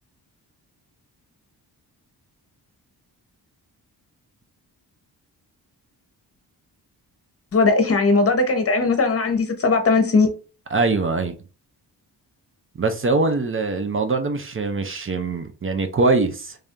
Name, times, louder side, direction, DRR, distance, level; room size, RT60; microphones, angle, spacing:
voice 1, 7.5-10.3, left 3 dB, 35° left, 1.0 m, -18 dB
voice 2, 10.7-11.3 12.8-16.6, right 3 dB, 30° right, 0.5 m, -22 dB
3.3 x 2.6 x 3.6 m
cardioid pair, 90°, 40 cm